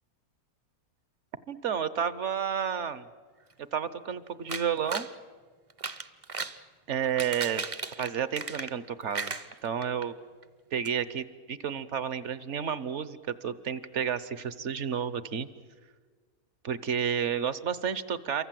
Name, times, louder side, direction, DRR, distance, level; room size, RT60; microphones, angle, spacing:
voice 1, 1.5-3.1 3.7-5.1 6.9-7.6 8.0-9.3 9.6-10.1 10.7-15.5 16.6-18.4, right 8 dB, 55° right, 15 dB, 1.2 m, -31 dB
sound 1, 4.5-5.1 5.7-6.6 7.0-8.9 9.1-10.1 10.4-10.5 10.8-10.9, right 4 dB, 30° right, 0.7 m, -36 dB
28.0 x 24.0 x 7.7 m, 1.5 s
omnidirectional pair, 1.5 m